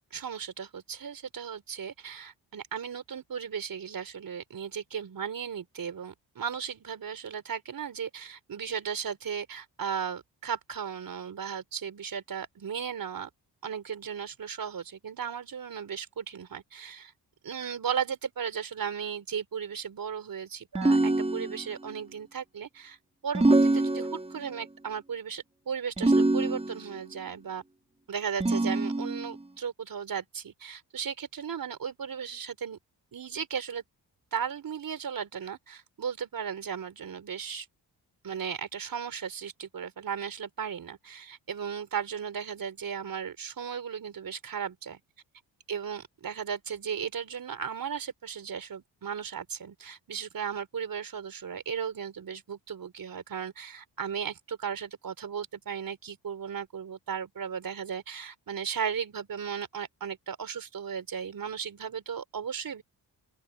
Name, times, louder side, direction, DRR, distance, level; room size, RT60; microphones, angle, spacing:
voice 1, 0.1-13.3 13.6-17.1 17.4-23.0 23.2-27.6 28.1-32.8 33.1-33.8 34.3-37.7 38.2-45.0 45.7-62.8, right 7 dB, 55° right, 4.2 m, -36 dB
sound 1, 20.7-21.9 23.3-24.5 26.0-27.0 28.4-29.4, right 2 dB, 15° right, 5.1 m, -25 dB
open air
cardioid pair, 100°, 41 cm